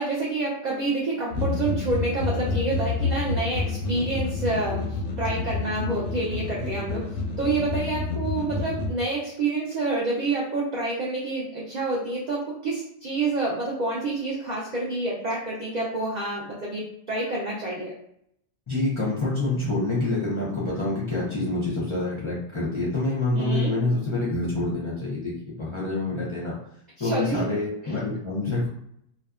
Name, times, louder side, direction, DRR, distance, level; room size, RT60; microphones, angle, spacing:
voice 1, 0.0-17.9 23.3-23.8 27.0-27.5, right 2 dB, 60° right, -4 dB, 0.4 m, -28 dB
sound 1, 1.3-8.9, left 3 dB, 90° left, 1.0 m, -29 dB
voice 2, 18.7-26.6 27.0-28.7, left 2 dB, 40° left, -7 dB, 0.4 m, -27 dB
2.7 x 2.2 x 2.3 m, 0.73 s
omnidirectional pair, 1.3 m